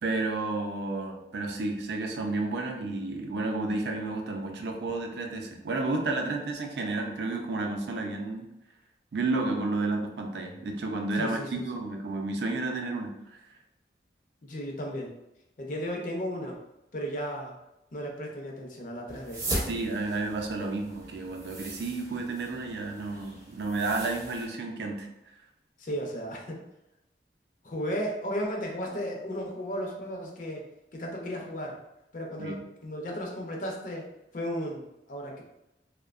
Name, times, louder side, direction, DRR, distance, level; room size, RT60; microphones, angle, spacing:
voice 1, 0.0-8.5 9.1-13.4 19.7-25.1 32.4-32.6, right 3 dB, 75° right, 3 dB, 0.4 m, -31 dB
voice 2, 11.2-11.6 14.4-15.1 15.6-16.5 16.9-17.6 17.9-19.6 25.8-26.6 27.6-31.8 32.1-34.1 34.3-35.4, equal, 45° left, 0 dB, 0.5 m, -35 dB
sound 1, 19.1-24.5, right 1 dB, 20° right, 0.4 m, -38 dB
2.7 x 2.1 x 2.3 m, 0.89 s
head